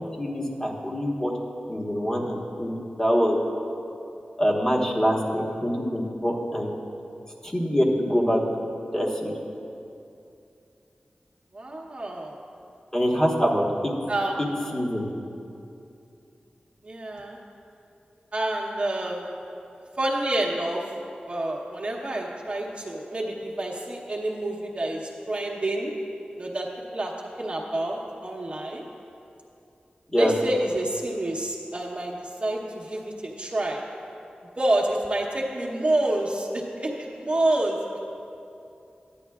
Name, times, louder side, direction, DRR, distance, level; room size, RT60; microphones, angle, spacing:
voice 1, 0.2-1.3 1.7-2.7 3.0-3.4 4.4-6.7 7.4-8.4 8.9-9.3 12.9-13.9 14.7-15.1 30.1-30.3, equal, 20° left, -2 dB, 1.3 m, -24 dB
voice 2, 11.5-12.3 14.1-14.4 16.8-17.4 18.3-19.4 20.0-20.8 21.2-25.9 26.4-27.1 27.4-28.8 30.1-33.9 34.6-37.8, right 1 dB, 40° right, -3 dB, 0.9 m, -28 dB
13.0 x 10.0 x 2.4 m, 2.7 s
wide cardioid pair, 85°, 3 cm